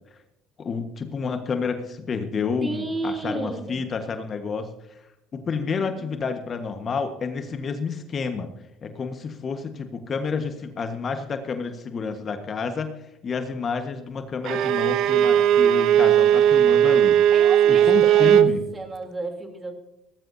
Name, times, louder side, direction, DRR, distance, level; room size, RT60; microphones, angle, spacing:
voice 1, 0.6-4.7 5.3-8.5 8.8-17.2 17.9-18.6, left 5 dB, 40° left, 7 dB, 1.5 m, -29 dB
voice 2, 2.6-3.8 5.8-6.3 17.3-18.5 18.7-19.7, right 2 dB, 25° right, 4 dB, 3.4 m, -32 dB
Bowed string instrument, 14.4-18.6, right 10 dB, 65° right, 0.8 m, -17 dB
18.0 x 14.5 x 2.8 m, 0.90 s
supercardioid pair, 80°, 0 cm